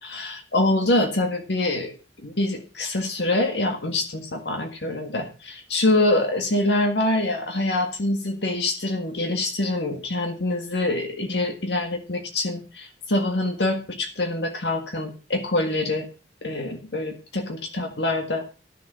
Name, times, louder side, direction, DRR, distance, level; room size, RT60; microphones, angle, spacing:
voice 1, 0.0-1.9 2.2-16.1 16.4-18.4, left 2 dB, 70° left, 4 dB, 1.9 m, -25 dB
12.0 x 7.0 x 6.8 m, 0.35 s
head